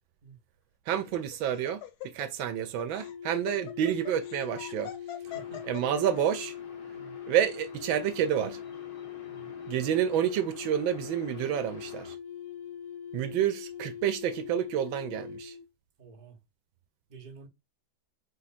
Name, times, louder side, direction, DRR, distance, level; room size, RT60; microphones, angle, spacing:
Laughter, 0.9-6.4, left 11 dB, 90° left, 1.7 m, -43 dB
voice 1, 0.9-4.9 5.7-6.5 7.3-8.6 9.7-12.2 13.1-15.6, right 10 dB, 80° right, 1.4 m, -29 dB
sound 1, 2.9-15.7, left 9 dB, 65° left, 1.0 m, -42 dB
sound 2, 5.2-12.2, left 4 dB, 40° left, 0.8 m, -52 dB
voice 2, 5.2-5.7 7.0-7.2 9.3-9.6 16.0-16.4 17.1-17.5, right 5 dB, 30° right, 0.9 m, -50 dB
4.5 x 2.6 x 4.2 m
omnidirectional pair, 2.2 m